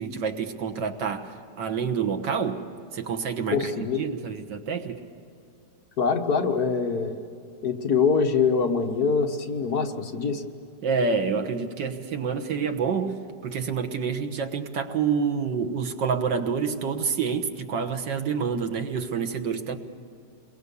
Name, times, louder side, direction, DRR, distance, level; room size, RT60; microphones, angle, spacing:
voice 1, 0.0-2.6 2.9-3.6 4.0-5.0 10.8-19.8, right 6 dB, 90° right, 6 dB, 2.1 m, -28 dB
voice 2, 3.5-4.0 6.0-7.1 7.6-10.4, left 5 dB, 60° left, 3 dB, 2.0 m, -24 dB
28.5 x 23.0 x 7.0 m, 2.5 s
omnidirectional pair, 1.9 m